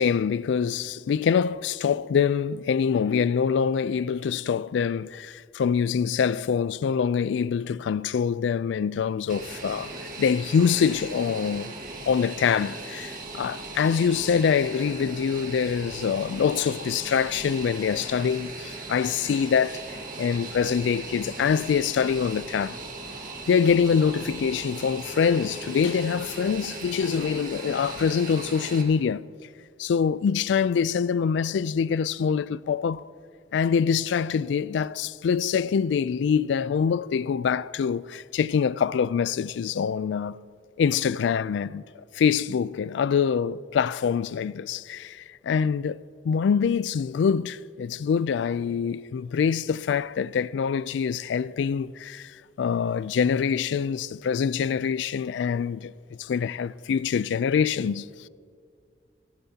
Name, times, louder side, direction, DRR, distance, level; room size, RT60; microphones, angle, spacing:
voice 1, 0.0-9.9 10.2-11.7 12.1-19.8 20.2-22.8 23.5-29.3 29.8-33.0 33.5-40.4 40.8-41.8 42.1-55.9 56.2-58.1, left 6 dB, 80° left, 0.3 m, -25 dB
Fixed-wing aircraft airplane, 9.3-28.8, right 3 dB, 50° right, 1.8 m, -38 dB
18.0 x 17.0 x 2.8 m
head